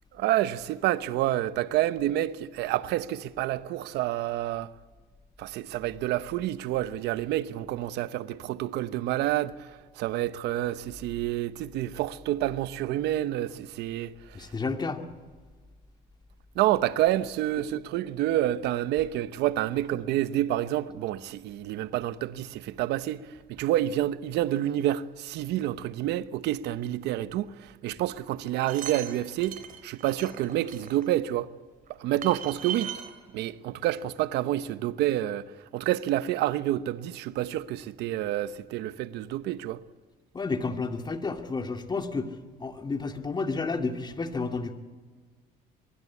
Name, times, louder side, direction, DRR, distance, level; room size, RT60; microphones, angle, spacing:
voice 1, 0.1-4.7 5.4-9.7 10.0-14.1 16.6-23.2 23.5-29.6 29.8-31.5 32.0-32.9 33.3-35.5 35.7-39.8, right 13 dB, 85° right, 1.0 m, -28 dB
voice 2, 14.3-15.0 40.3-42.3 42.6-44.7, left 4 dB, 25° left, 2.3 m, -31 dB
sound 1, 28.4-31.1 31.9-32.0 32.2-33.1 33.9-34.0 34.2-34.3, right 9 dB, 55° right, 3.5 m, -38 dB
23.5 x 22.0 x 8.5 m
cardioid pair, 110°, 17 cm